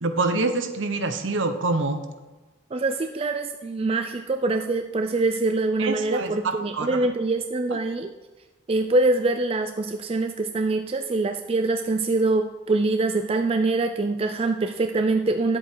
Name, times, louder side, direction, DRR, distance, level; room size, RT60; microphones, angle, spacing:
voice 1, 0.0-2.0 5.8-7.0 7.7-7.8, right 3 dB, 65° right, 8 dB, 0.9 m, -26 dB
voice 2, 2.7-8.1 8.7-15.6, right 2 dB, 25° right, 7 dB, 0.3 m, -24 dB
11.0 x 7.9 x 4.5 m, 1.2 s
head